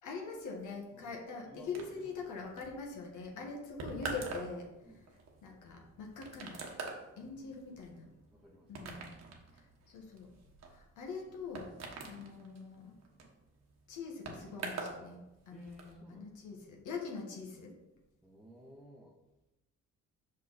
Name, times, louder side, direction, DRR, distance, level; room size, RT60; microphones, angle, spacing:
voice 1, 0.0-4.7 5.4-6.8 7.2-8.1 8.7-9.2 9.5-10.3 10.7-11.7 12.0-13.0 13.9-17.7, left 4 dB, 80° left, 0 dB, 1.5 m, -43 dB
voice 2, 1.4-2.5 2.8-3.0 3.3-3.5 4.8-5.1 7.2-9.0 12.0-12.1 15.5-16.6 18.2-19.2, equal, ahead, -3 dB, 1.0 m, -57 dB
sound 1, 1.7-15.0 15.3-15.9, right 3 dB, 60° right, 1.4 m, -45 dB
5.7 x 5.4 x 4.1 m, 0.99 s
cardioid pair, 90°, 30 cm